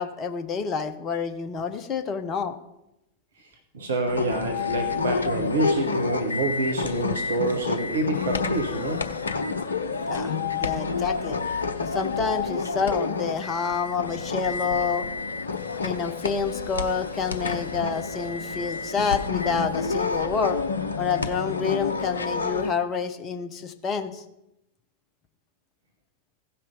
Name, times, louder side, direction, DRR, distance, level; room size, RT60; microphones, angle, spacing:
voice 1, 0.0-2.6 10.1-11.4 11.8-15.1 15.7-20.6 21.0-24.2, left 6 dB, 30° left, 7 dB, 1.0 m, -28 dB
voice 2, 3.4-9.1, right 1 dB, 65° right, 4 dB, 1.2 m, -27 dB
sound 1, 4.1-22.7, left 4 dB, 75° left, 0.7 m, -29 dB
16.0 x 5.6 x 5.1 m, 0.88 s
figure-of-eight pair, 90°, 0 cm